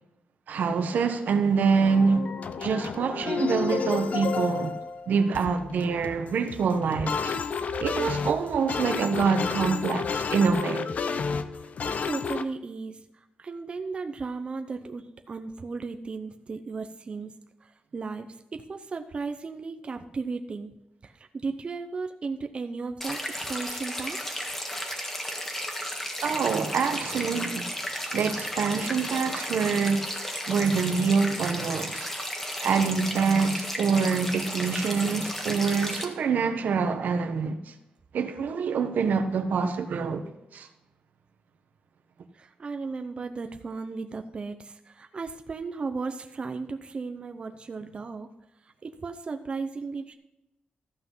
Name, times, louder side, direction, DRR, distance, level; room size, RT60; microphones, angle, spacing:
voice 1, 0.5-2.2 2.6-4.8 5.1-7.4 7.8-10.9 26.2-27.8 28.1-30.1 30.5-32.1 32.6-37.7 38.1-40.2 40.5-40.7, right 5 dB, 85° right, 1.1 m, -25 dB
sound 1, 1.8-12.4, left 5 dB, 60° left, 0.6 m, -31 dB
voice 2, 11.8-13.0 13.4-17.3 17.6-20.7 21.0-24.5 42.3-48.3 48.8-50.2, right 4 dB, 40° right, 0.7 m, -35 dB
Small stream of rain water running off the hillside, 23.0-36.1, equal, 15° left, 1.6 m, -34 dB
13.5 x 5.9 x 5.6 m
wide cardioid pair, 135°, 3 cm